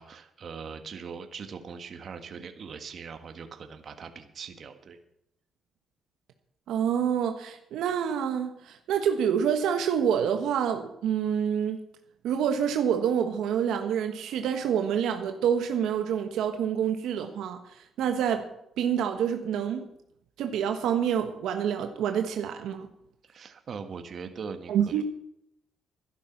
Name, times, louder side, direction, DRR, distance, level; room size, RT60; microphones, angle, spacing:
voice 1, 0.0-5.0 23.2-25.0, right 5 dB, 50° right, 7 dB, 1.6 m, -41 dB
voice 2, 6.7-11.8 12.2-18.5 18.8-19.8 20.4-22.9 24.7-25.0, right 8 dB, 80° right, 6 dB, 1.3 m, -27 dB
12.5 x 11.5 x 6.0 m, 0.78 s
cardioid pair, 90°, 0 cm